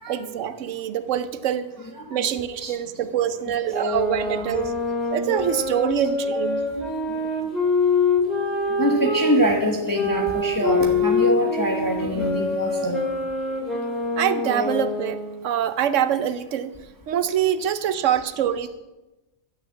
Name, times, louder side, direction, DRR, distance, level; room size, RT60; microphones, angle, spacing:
voice 1, 0.1-1.7 2.1-4.7 5.1-6.7 14.2-16.8 17.1-18.7, right 9 dB, 65° right, 13 dB, 1.0 m, -25 dB
voice 2, 2.0-2.7 3.5-3.6 4.4-4.5 5.3-5.4 8.8-13.0, equal, 15° left, 0 dB, 1.2 m, -24 dB
sound 1, 3.7-9.3 9.9-15.4, left 3 dB, ahead, 2.7 m, -25 dB
12.0 x 6.6 x 7.4 m, 1.1 s
omnidirectional pair, 1.4 m